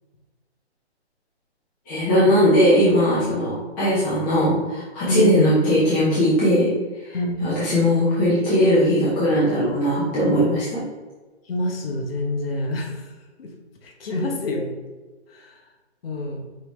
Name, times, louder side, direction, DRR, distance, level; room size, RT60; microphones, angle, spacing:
voice 1, 1.9-6.7 7.1-10.8, equal, 15° left, -10 dB, 0.9 m, -19 dB
voice 2, 5.1-5.5 7.1-7.4 11.5-13.0 13.4-13.5 13.8-14.7 15.3-15.5 16.0-16.4, left 1 dB, 60° left, 1 dB, 1.0 m, -26 dB
5.5 x 2.8 x 3.1 m, 1.3 s
hypercardioid pair, 160°, 34 cm